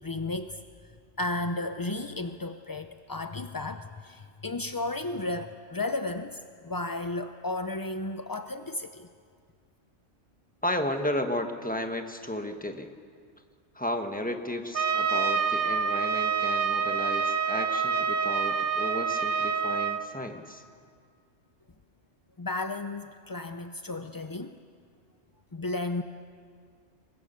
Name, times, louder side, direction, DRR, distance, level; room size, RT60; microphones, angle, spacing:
voice 1, 0.0-0.6 1.2-9.1 22.4-24.6 25.5-26.0, left 2 dB, 35° left, 8 dB, 0.3 m, -33 dB
voice 2, 10.6-12.9 13.7-20.6, left 1 dB, 5° left, 5 dB, 1.3 m, -33 dB
Trumpet, 14.7-20.0, right 6 dB, 50° right, 0.9 m, -27 dB
24.0 x 20.5 x 6.8 m, 2.1 s
omnidirectional pair, 1.2 m